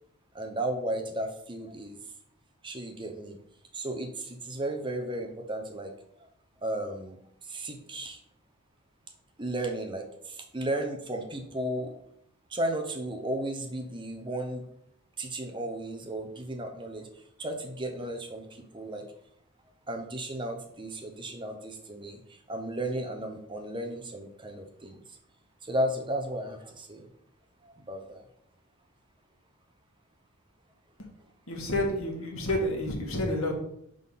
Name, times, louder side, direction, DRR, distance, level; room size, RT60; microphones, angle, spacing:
voice 1, 0.3-2.0 2.6-3.4 3.7-5.9 6.6-7.2 7.4-8.2 9.4-11.9 12.5-14.6 15.2-17.1 17.4-19.0 19.9-25.2 25.6-27.0 27.6-28.2, right 1 dB, 20° right, 4 dB, 0.7 m, -34 dB
voice 2, 31.5-33.5, left 1 dB, 65° left, 0 dB, 1.6 m, -29 dB
5.6 x 3.8 x 5.6 m, 0.73 s
head